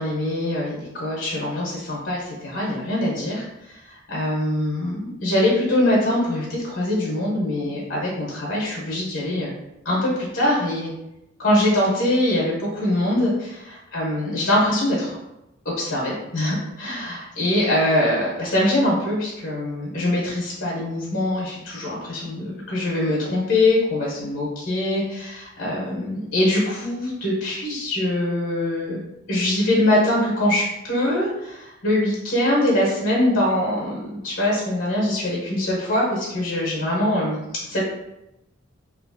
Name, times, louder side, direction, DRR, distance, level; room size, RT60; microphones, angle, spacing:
voice 1, 0.0-9.5 9.8-10.9 11.4-15.2 15.6-29.0 29.3-37.8, left 1 dB, 55° left, -5 dB, 0.9 m, -23 dB
3.0 x 2.5 x 2.6 m, 0.89 s
head